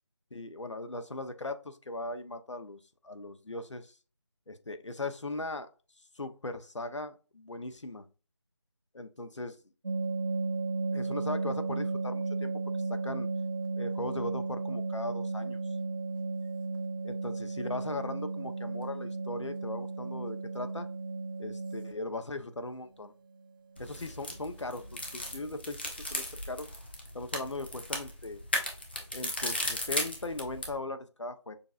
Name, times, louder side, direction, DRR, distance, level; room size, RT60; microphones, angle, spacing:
voice 1, 0.3-3.9 4.5-5.7 6.2-8.1 8.9-9.6 10.9-12.6 12.9-13.3 13.8-15.6 17.0-20.9 21.4-23.1 23.8-25.8 26.1-26.7 27.1-28.4 29.1-31.5, left 2 dB, 80° left, 0.9 m, -39 dB
sound 1, 9.8-21.9 23.8-24.0 24.3-24.4 24.8-25.0 25.2-25.5, right 3 dB, 45° right, 0.7 m, -34 dB
sound 2, 23.8-30.8, left 1 dB, 20° left, 0.7 m, -36 dB
6.8 x 2.7 x 2.5 m
figure-of-eight pair, 170°, 15 cm